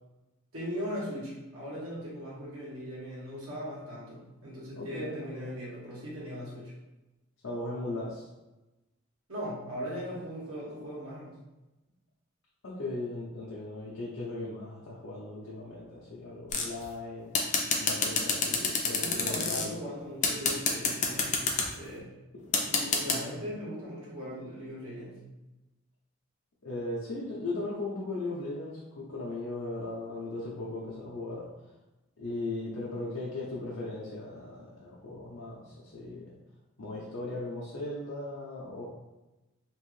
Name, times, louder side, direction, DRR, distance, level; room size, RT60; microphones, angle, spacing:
voice 1, 0.5-6.7 9.3-11.3 19.0-21.4 21.7-22.1 22.6-25.2, equal, 90° right, -7 dB, 1.5 m, -39 dB
voice 2, 4.7-5.5 7.4-8.3 12.6-17.5 17.8-19.8 23.1-23.4 26.6-31.5 32.2-36.3 36.8-38.9, left 2 dB, 75° left, -6 dB, 0.6 m, -38 dB
sound 1, 16.5-16.8 17.4-19.7 20.2-21.7 22.5-23.2, left 5 dB, 35° left, 0.4 m, -27 dB
3.0 x 2.6 x 3.1 m, 1.0 s
head